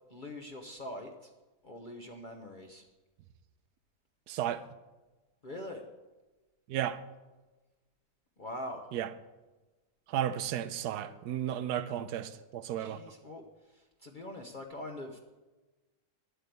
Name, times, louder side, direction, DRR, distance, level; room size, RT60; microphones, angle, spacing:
voice 1, 0.1-1.3 1.6-2.8 5.4-5.8 8.4-8.8 12.8-13.4 13.7-15.2, left 1 dB, 35° left, 1.0 m, -43 dB
voice 2, 4.3-4.6 6.7-7.0 8.9-9.1 10.1-13.0, right 10 dB, 85° right, 1.2 m, -33 dB
10.5 x 8.0 x 8.0 m
omnidirectional pair, 1.7 m